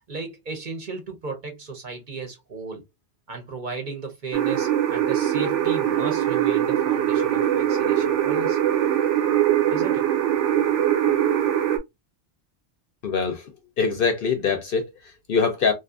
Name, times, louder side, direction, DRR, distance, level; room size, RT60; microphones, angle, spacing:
voice 1, 0.1-2.8 3.3-8.6 9.7-10.1, right 4 dB, 50° right, 0.8 m, -35 dB
sound 1, 4.3-11.8, right 11 dB, 75° right, 0.9 m, -22 dB
voice 2, 13.0-15.7, left 5 dB, 60° left, 0.6 m, -24 dB
2.7 x 2.4 x 2.3 m
omnidirectional pair, 1.2 m